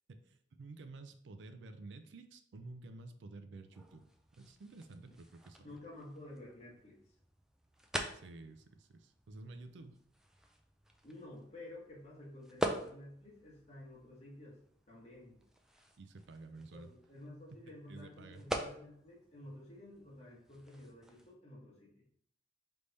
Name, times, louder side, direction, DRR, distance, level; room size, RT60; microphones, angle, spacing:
voice 1, 0.2-4.1 4.4-5.8 8.1-10.0 16.0-16.9 17.9-18.4, right 3 dB, 75° right, 8 dB, 0.4 m, -51 dB
sound 1, 3.7-21.3, equal, 5° right, 0.3 m, -46 dB
voice 2, 5.6-7.0 11.0-14.6 14.9-15.4 16.5-22.0, left 1 dB, 35° left, -4 dB, 1.3 m, -52 dB
3.4 x 3.3 x 4.0 m, 0.65 s
head